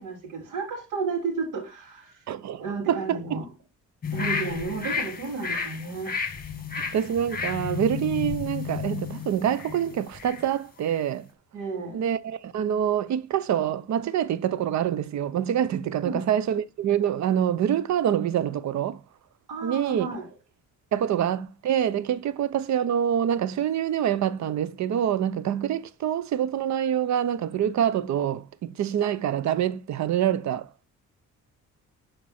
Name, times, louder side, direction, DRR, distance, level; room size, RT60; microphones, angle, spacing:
voice 1, 0.0-2.2 2.6-3.5 4.1-6.1 11.5-12.0 16.0-16.3 19.5-20.3, right 4 dB, 85° right, 3.3 m, -32 dB
voice 2, 2.3-3.4 6.9-11.3 11.9-19.0 19.6-20.1 20.9-30.7, right 10 dB, 65° right, 0.8 m, -26 dB
sound 1, 4.0-10.5 10.8-11.0, left 6 dB, 30° left, 1.7 m, -32 dB
11.0 x 4.6 x 4.4 m
cardioid pair, 90°, 30 cm